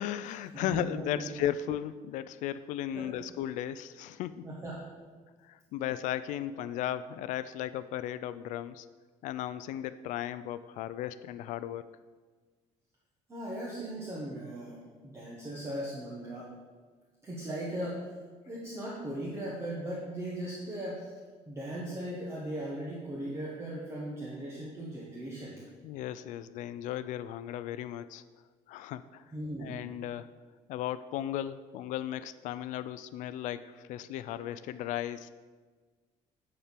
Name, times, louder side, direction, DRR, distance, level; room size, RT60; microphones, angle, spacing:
voice 1, 0.0-4.5 5.4-8.9 9.2-11.9 25.8-28.2 28.7-29.2 29.6-30.3 30.7-35.3, left 11 dB, 75° left, 14 dB, 0.4 m, -36 dB
voice 2, 0.5-1.3 2.9-3.1 4.4-4.8 13.3-14.8 15.0-16.5 17.2-18.0 18.5-21.1 21.4-25.5 29.3-29.8, right 1 dB, 20° right, -5 dB, 1.4 m, -38 dB
10.0 x 4.4 x 7.4 m, 1.4 s
cardioid pair, 175°, 13 cm